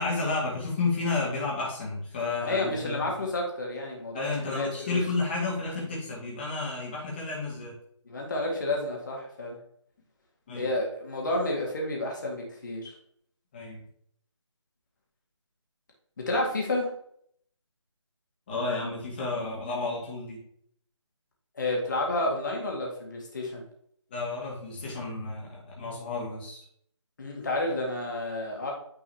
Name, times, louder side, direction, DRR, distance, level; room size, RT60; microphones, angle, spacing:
voice 1, 0.0-3.1 4.1-7.7 10.5-10.7 13.5-13.8 18.5-20.4 24.1-26.6, left 3 dB, 20° left, -5 dB, 2.0 m, -31 dB
voice 2, 2.4-5.0 8.1-9.6 10.5-12.9 16.2-16.9 21.6-23.6 27.2-28.7, left 2 dB, 40° left, -1 dB, 1.9 m, -30 dB
9.1 x 4.6 x 2.9 m, 0.66 s
figure-of-eight pair, 160°, 16 cm